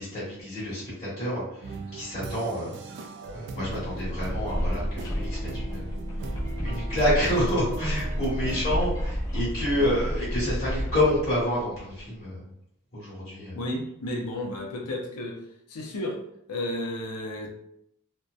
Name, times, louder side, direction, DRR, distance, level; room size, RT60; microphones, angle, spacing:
voice 1, 0.0-2.7 3.3-5.9 6.6-12.4 12.9-13.6, left 1 dB, 35° left, -10 dB, 1.1 m, -28 dB
sound 1, 1.6-8.6, right 3 dB, 55° right, 0.3 m, -40 dB
sound 2, 3.8-12.1, equal, 15° left, 0.5 m, -31 dB
voice 2, 9.7-10.1 13.5-15.4 15.7-16.2 16.5-17.5, left 1 dB, 80° left, 1 dB, 0.6 m, -32 dB
2.6 x 2.1 x 2.3 m, 0.75 s
head